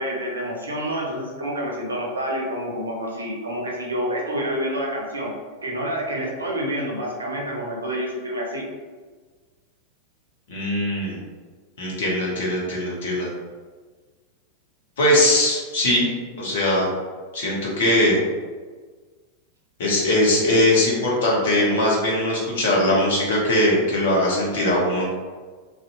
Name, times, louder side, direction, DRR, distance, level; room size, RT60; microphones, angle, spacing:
voice 1, 0.0-5.3 5.6-8.6, equal, 75° right, -2 dB, 0.4 m, -28 dB
voice 2, 10.5-11.2 11.8-13.3 15.0-16.9 17.3-18.2 19.8-25.1, left 1 dB, 60° left, -3 dB, 0.8 m, -20 dB
2.6 x 2.2 x 2.6 m, 1.4 s
figure-of-eight pair, 90°, 0 cm